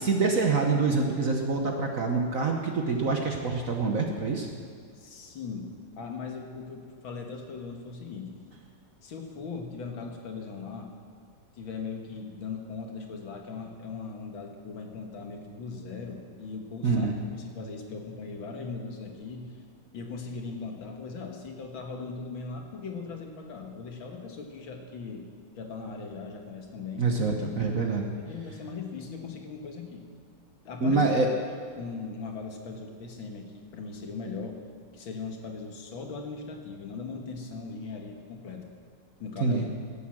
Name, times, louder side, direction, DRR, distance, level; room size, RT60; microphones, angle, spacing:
voice 1, 0.0-4.5 16.8-17.1 27.0-28.1 30.8-31.3 39.4-39.7, right 4 dB, 50° right, 2 dB, 1.2 m, -26 dB
voice 2, 5.0-8.3 9.0-10.9 11.5-17.1 17.3-19.5 19.9-25.3 25.6-27.1 28.1-30.1 30.6-31.0 31.7-34.6 34.9-38.7 39.2-39.6, left 4 dB, 70° left, 3 dB, 2.2 m, -39 dB
16.0 x 8.3 x 7.5 m, 2.1 s
omnidirectional pair, 2.3 m